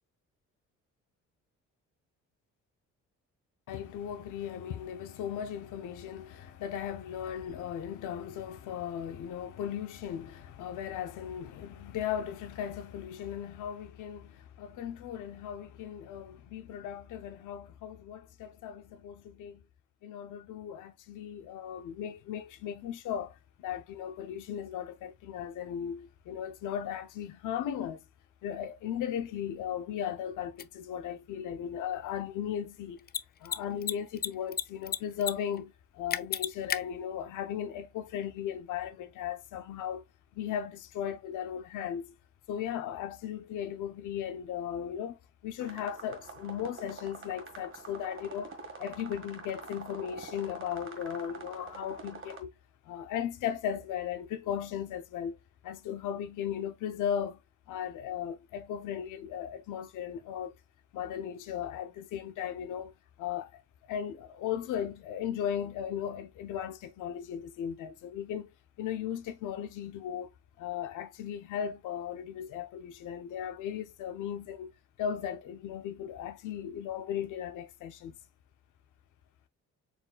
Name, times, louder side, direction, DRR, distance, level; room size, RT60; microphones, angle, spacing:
voice 1, 3.7-19.6 20.0-28.0 28.4-33.1 33.4-40.0 40.3-42.1 42.5-48.5 48.8-52.5 52.8-55.4 55.6-57.4 57.7-60.6 60.9-62.9 63.2-63.6 63.9-78.1, left 9 dB, 85° left, 0.8 m, -37 dB
Mechanisms, 30.6-30.7 33.0-33.2 33.5-33.6 33.8-34.6 34.9-35.3 35.6-35.7 36.1-36.8, left 9 dB, 35° left, 0.4 m, -30 dB
sound 1, 45.6-52.4, right 4 dB, 40° right, 1.7 m, -46 dB
4.3 x 4.1 x 2.3 m
cardioid pair, 90°, 30 cm